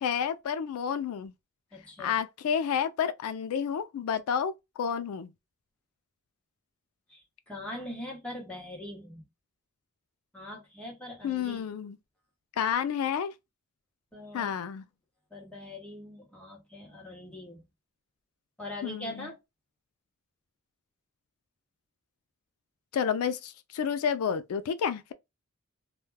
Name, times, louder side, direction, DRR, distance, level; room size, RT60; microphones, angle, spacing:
voice 1, 0.0-1.3 2.0-4.5 4.8-5.3 11.2-12.0 12.6-13.3 14.3-14.8 18.8-19.3 22.9-25.1, left 7 dB, 85° left, 0.3 m, -30 dB
voice 2, 1.7-2.2 7.1-9.3 10.3-11.6 14.1-14.5 15.3-17.7 18.6-19.4, left 1 dB, 5° left, 0.9 m, -42 dB
2.2 x 2.1 x 3.2 m
head